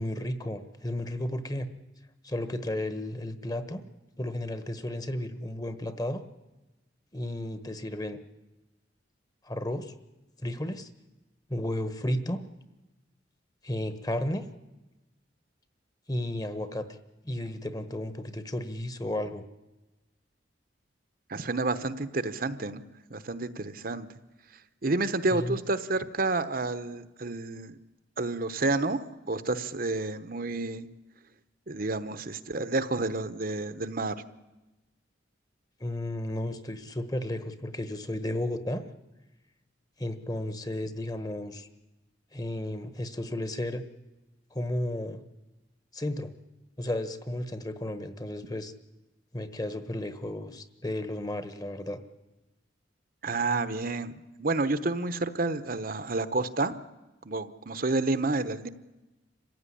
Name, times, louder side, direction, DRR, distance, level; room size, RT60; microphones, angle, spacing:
voice 1, 0.0-1.7 2.2-3.8 4.2-6.2 7.1-8.2 9.4-9.9 10.4-10.9 11.5-12.4 13.6-14.4 16.1-16.9 17.2-19.4 25.3-25.6 35.8-38.8 40.0-41.7 42.3-43.8 44.5-45.2 45.9-46.3 46.8-48.7 49.3-52.0, left 1 dB, 20° left, 11 dB, 1.3 m, -33 dB
voice 2, 21.3-22.8 23.1-24.1 24.8-27.8 28.2-30.9 31.7-34.1 53.2-54.1 54.4-56.7 57.2-58.7, right 3 dB, 50° right, 12 dB, 1.0 m, -30 dB
26.5 x 15.5 x 10.0 m, 1.1 s
head